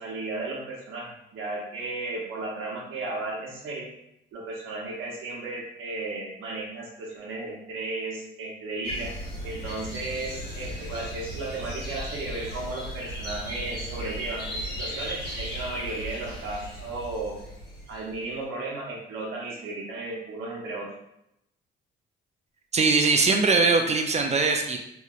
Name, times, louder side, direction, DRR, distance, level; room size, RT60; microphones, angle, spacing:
voice 1, 0.0-3.9 4.3-9.1 9.4-17.4 17.9-20.9, right 2 dB, 85° right, -2 dB, 0.9 m, -34 dB
sound 1, 8.8-18.2, equal, 60° left, 1.5 m, -36 dB
voice 2, 22.7-24.8, right 4 dB, 35° right, 3 dB, 0.4 m, -21 dB
3.0 x 2.9 x 2.4 m, 0.81 s
cardioid pair, 90°, 20 cm